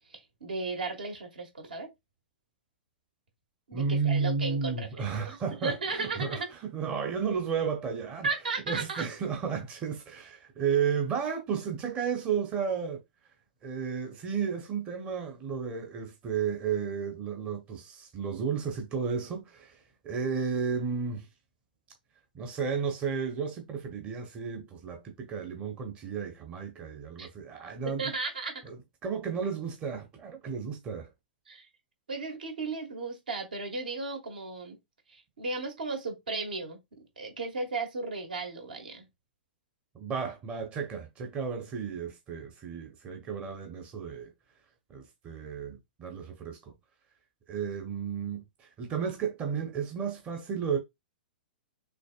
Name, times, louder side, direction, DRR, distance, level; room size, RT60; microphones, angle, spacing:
voice 1, 0.1-1.9 3.7-4.9 5.3-6.5 8.2-9.1 27.2-27.3 27.8-28.6 31.5-31.7 32.1-34.8 35.1-36.8 37.2-39.1, right 3 dB, 65° right, 1.5 m, -35 dB
voice 2, 3.7-6.4 6.7-8.3 8.7-13.0 13.6-21.3 22.3-28.1 28.6-28.8 29.0-31.1 39.9-44.3 44.9-46.7 47.5-50.8, right 6 dB, 25° right, 0.9 m, -33 dB
6.2 x 2.9 x 2.3 m
figure-of-eight pair, 110°, 5 cm